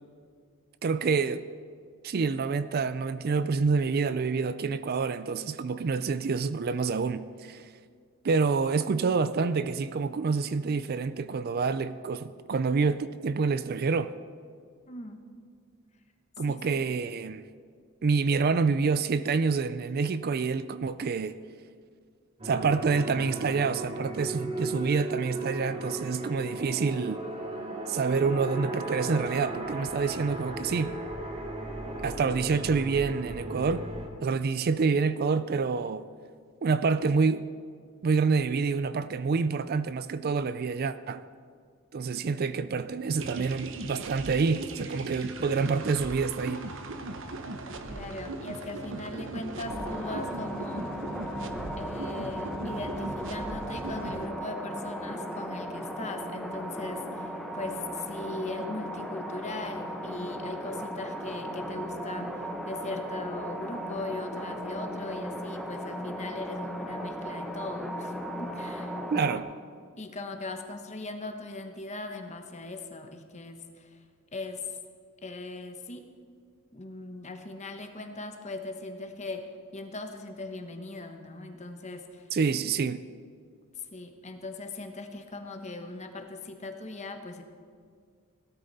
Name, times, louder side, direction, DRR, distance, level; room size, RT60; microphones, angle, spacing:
voice 1, 0.8-1.4 2.0-7.6 8.2-14.1 16.4-17.4 18.0-21.4 22.4-27.2 27.9-30.9 32.0-33.9 34.2-36.1 36.6-37.5 38.0-41.2 41.9-46.6 69.1-69.5 82.3-83.0, right 4 dB, 45° right, 0.4 m, -27 dB
voice 2, 14.9-15.2 16.5-16.6 47.9-51.1 51.8-69.3 70.0-74.0 74.3-74.8 75.2-76.0 76.7-79.5 79.7-82.3 83.8-87.4, left 2 dB, 35° left, 1.1 m, -39 dB
sound 1, 22.4-34.1, right 2 dB, 30° right, 1.4 m, -36 dB
sound 2, 43.2-54.3, right 2 dB, 60° right, 0.9 m, -39 dB
sound 3, 49.7-69.4, equal, ahead, 1.0 m, -36 dB
17.5 x 12.5 x 4.2 m
head